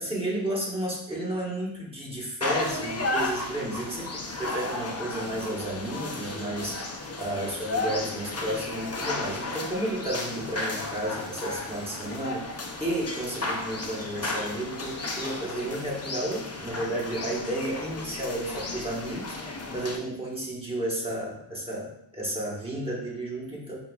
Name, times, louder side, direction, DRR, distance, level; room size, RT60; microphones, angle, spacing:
voice 1, 0.0-23.8, right 1 dB, 10° right, -5 dB, 1.2 m, -32 dB
sound 1, 2.4-20.0, left 2 dB, 30° left, 0.6 m, -34 dB
5.7 x 2.8 x 2.3 m, 0.76 s
wide cardioid pair, 65°, 49 cm